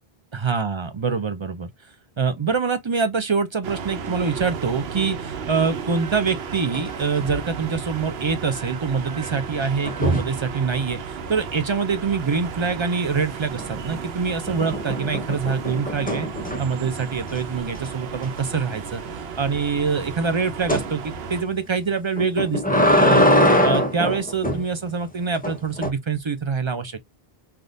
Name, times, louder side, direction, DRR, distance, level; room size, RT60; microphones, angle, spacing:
voice 1, 0.3-1.7 2.2-16.3 16.6-23.3 23.6-27.0, right 5 dB, 40° right, 0.4 m, -25 dB
sound 1, 3.6-21.4, right 6 dB, 80° right, 0.9 m, -34 dB
sound 2, 6.3-6.9 7.2-7.5 9.8-10.4 13.5-14.0 14.5-16.8 17.3-17.4 17.7-17.9 18.2-18.3 20.7-20.9 22.2-24.6 25.4-25.9, equal, 10° left, 0.6 m, -22 dB
3.5 x 2.4 x 2.5 m
omnidirectional pair, 1.0 m